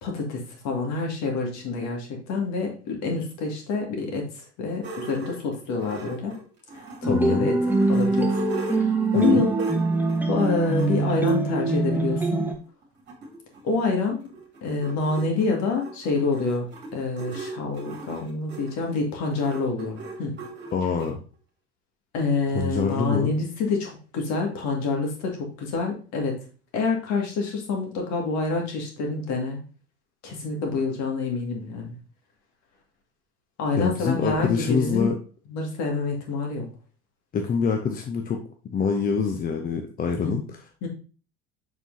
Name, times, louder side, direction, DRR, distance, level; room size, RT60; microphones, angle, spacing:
voice 1, 0.0-4.3 4.6-6.3 6.7-7.6 7.9-8.4 8.7-9.8 10.3-12.4 13.6-14.2 14.6-20.4 22.1-26.4 26.7-29.6 30.2-32.0 33.6-35.1 35.5-36.7 40.2-40.5 40.8-40.9, left 4 dB, 50° left, 1 dB, 2.1 m, -27 dB
sound 1, 4.8-7.1 7.5-11.4 12.2-12.3 12.6-12.7 12.8-21.1, right 3 dB, 30° right, 2.1 m, -40 dB
sound 2, 7.0-12.5, right 3 dB, 5° right, 1.2 m, -23 dB
voice 2, 7.1-7.5 9.1-9.5 20.7-21.2 22.5-23.3 33.7-35.1 37.3-38.4 38.7-40.4, left 5 dB, 25° left, 4 dB, 0.7 m, -25 dB
7.0 x 5.8 x 2.8 m, 0.37 s
figure-of-eight pair, 65°, 34 cm